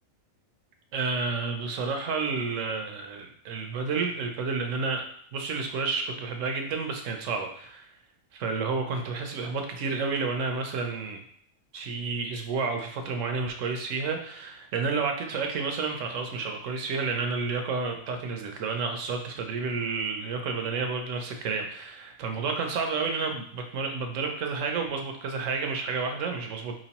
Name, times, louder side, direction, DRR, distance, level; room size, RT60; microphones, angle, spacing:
voice 1, 0.9-5.0 5.3-7.9 8.3-11.2 11.7-26.7, right 4 dB, 65° right, 4 dB, 0.9 m, -30 dB
4.5 x 3.0 x 2.9 m, 0.63 s
omnidirectional pair, 1.5 m